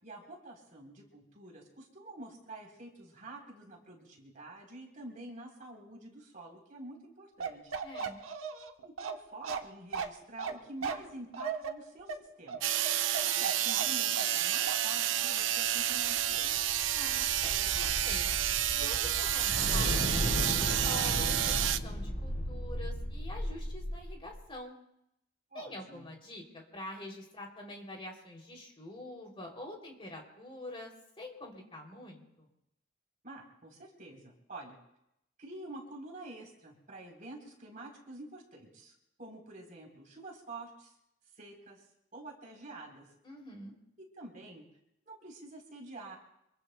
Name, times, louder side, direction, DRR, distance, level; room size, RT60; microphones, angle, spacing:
voice 1, 0.0-7.7 8.8-16.6 25.5-26.1 33.2-34.8 35.4-40.9 41.3-41.8 42.1-43.1 44.0-44.6 45.1-46.2, right 2 dB, 40° right, -1 dB, 3.8 m, -48 dB
Bark, 7.4-14.4 14.7-14.9, right 6 dB, 85° right, 1.1 m, -37 dB
voice 2, 7.8-8.2 16.9-17.5 17.8-18.3 18.8-24.8 25.5-32.5 43.2-43.7, left 1 dB, 25° left, 0 dB, 3.0 m, -46 dB
sound 1, 12.6-21.8, right 11 dB, 65° right, 0.5 m, -30 dB
sound 2, 16.0-24.4, left 1 dB, 65° left, 3.1 m, -35 dB
26.0 x 22.5 x 2.3 m, 0.82 s
head